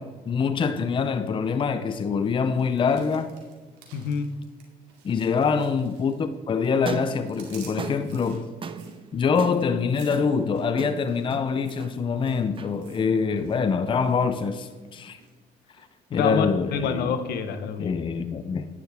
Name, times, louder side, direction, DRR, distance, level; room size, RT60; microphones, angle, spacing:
voice 1, 0.0-3.4 5.0-8.5 9.1-15.2 16.1-17.1 17.8-18.7, left 5 dB, 30° left, 0.6 m, -25 dB
sound 1, 2.6-6.4 6.6-13.6 13.8-14.2 14.6-15.3 15.8-15.9, right 5 dB, 85° right, 2.5 m, -52 dB
voice 2, 3.9-4.3 16.1-18.0, left 6 dB, 70° left, 1.0 m, -27 dB
sound 2, 6.8-15.0, right 6 dB, 30° right, 0.7 m, -40 dB
11.0 x 10.0 x 3.5 m
cardioid pair, 110°, 17 cm